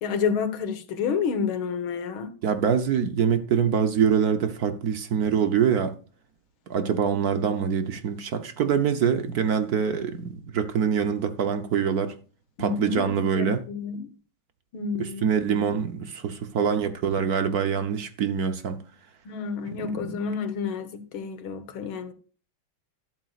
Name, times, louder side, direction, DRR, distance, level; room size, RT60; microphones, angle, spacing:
voice 1, 0.0-2.3 12.6-14.1 14.7-15.3 19.3-22.1, left 6 dB, 90° left, 2.1 m, -29 dB
voice 2, 2.4-5.9 6.7-12.1 12.6-13.6 15.0-18.8 19.8-20.2, right 7 dB, 60° right, 1.2 m, -25 dB
12.5 x 11.5 x 2.4 m
omnidirectional pair, 2.2 m